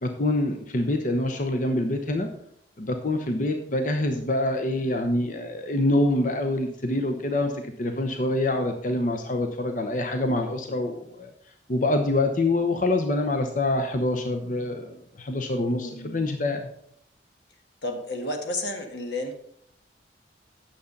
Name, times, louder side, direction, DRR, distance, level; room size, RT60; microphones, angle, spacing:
voice 1, 0.0-2.3 2.8-11.3 11.7-16.7, left 2 dB, 45° left, 5 dB, 0.8 m, -26 dB
voice 2, 15.6-16.1 17.8-19.3, left 1 dB, 70° left, 4 dB, 1.6 m, -32 dB
9.2 x 7.1 x 5.2 m, 0.70 s
head